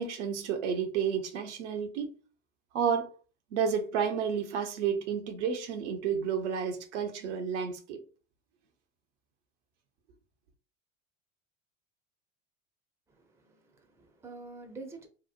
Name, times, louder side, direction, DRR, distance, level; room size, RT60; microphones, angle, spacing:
voice 1, 0.0-2.2 2.7-3.1 3.5-8.0, right 7 dB, 65° right, 0.7 m, -31 dB
voice 2, 13.1-15.1, right 3 dB, 5° right, 0.6 m, -47 dB
2.8 x 2.0 x 2.4 m
figure-of-eight pair, 75°, 39 cm